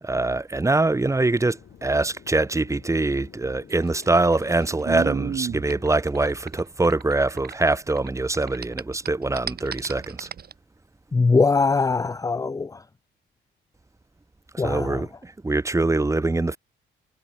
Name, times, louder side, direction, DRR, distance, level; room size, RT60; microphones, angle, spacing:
voice 1, 0.0-10.3 14.5-16.6, right 2 dB, 15° right, 1.3 m, -23 dB
sound 1, 0.7-5.8, left 10 dB, 65° left, 6.4 m, -50 dB
sound 2, 3.7-8.1 8.3-10.5, right 8 dB, 50° right, 3.0 m, -33 dB
voice 2, 11.1-12.7 14.6-15.0, left 4 dB, 15° left, 0.5 m, -21 dB
cardioid pair, 90°, 20 cm